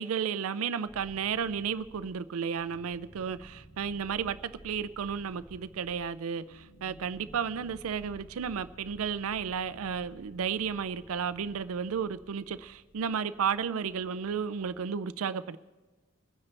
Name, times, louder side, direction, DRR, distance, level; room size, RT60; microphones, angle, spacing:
voice 1, 0.0-15.6, right 7 dB, 90° right, 0.4 m, -33 dB
sound 1, 0.8-14.9, equal, 60° left, 4.6 m, -55 dB
22.5 x 9.8 x 3.3 m
head